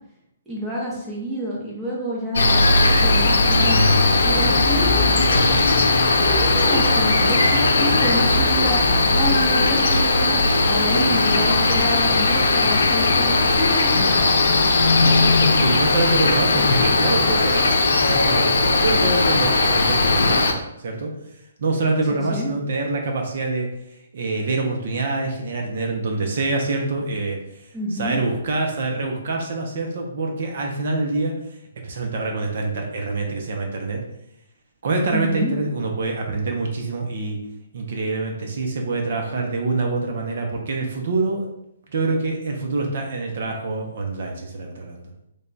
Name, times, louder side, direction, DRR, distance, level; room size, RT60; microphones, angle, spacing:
voice 1, 0.5-5.1 6.1-8.8 9.1-14.2 22.1-22.5 27.7-28.2 35.1-35.5, equal, 5° right, -5 dB, 0.7 m, -28 dB
Cricket, 2.4-20.5, left 3 dB, 80° left, 0.6 m, -18 dB
voice 2, 5.3-5.6 14.7-21.1 21.6-23.7 24.1-27.6 27.9-31.3 31.8-34.0 34.8-37.4 37.7-41.5 41.9-45.1, right 3 dB, 50° right, 1 dB, 0.6 m, -25 dB
3.3 x 2.2 x 3.9 m, 0.80 s
hypercardioid pair, 170°, 0 cm